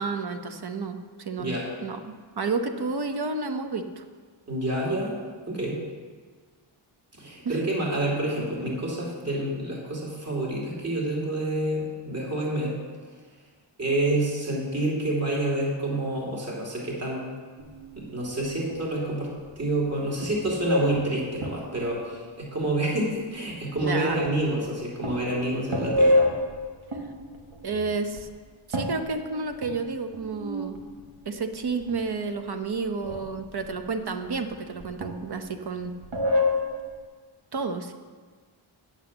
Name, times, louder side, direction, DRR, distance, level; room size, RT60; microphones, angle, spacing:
voice 1, 0.0-4.0 7.4-7.6 23.8-24.2 27.6-28.3 28.7-30.8 31.2-35.9 37.5-37.9, right 4 dB, 50° right, 7 dB, 0.9 m, -31 dB
voice 2, 4.5-5.2 5.5-5.8 7.1-12.8 13.8-17.2 18.0-26.2, right 1 dB, 30° right, -4 dB, 2.6 m, -28 dB
sound 1, 17.6-18.3 18.7-18.9 19.4-19.9 20.2-21.9 22.6-22.7 23.5-24.1 24.5-24.7 25.0-28.2 28.7-31.4 31.6-32.4 33.0-33.9 34.3-35.8 36.0-36.9, left 1 dB, 70° right, 1.5 m, -28 dB
8.8 x 7.2 x 7.2 m, 1.5 s
wide cardioid pair, 125°, 49 cm